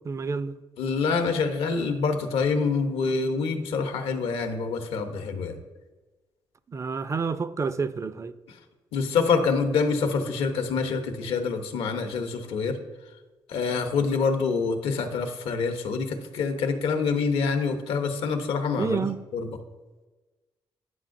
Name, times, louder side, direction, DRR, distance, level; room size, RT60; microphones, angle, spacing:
voice 1, 0.0-0.6 6.7-8.3 18.8-19.2, right 5 dB, 35° right, 0.4 m, -29 dB
voice 2, 0.8-5.6 8.9-12.8 13.5-19.1 19.3-19.5, left 5 dB, 80° left, 0.7 m, -26 dB
9.4 x 5.6 x 2.6 m
cardioid pair, 65°, 9 cm